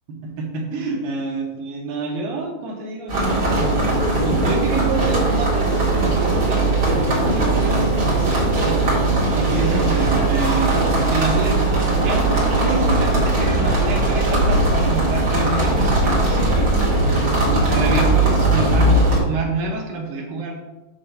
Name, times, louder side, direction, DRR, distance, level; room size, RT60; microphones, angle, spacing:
voice 1, 0.2-3.8 4.2-9.0 9.3-16.7 17.5-20.6, right 3 dB, 80° right, 0 dB, 2.9 m, -28 dB
sound 1, 3.1-19.2, right 2 dB, 30° right, 2.0 m, -19 dB
sound 2, 7.8-11.5, right 1 dB, 60° right, 3.9 m, -35 dB
8.4 x 3.4 x 6.5 m, 1.1 s
omnidirectional pair, 4.0 m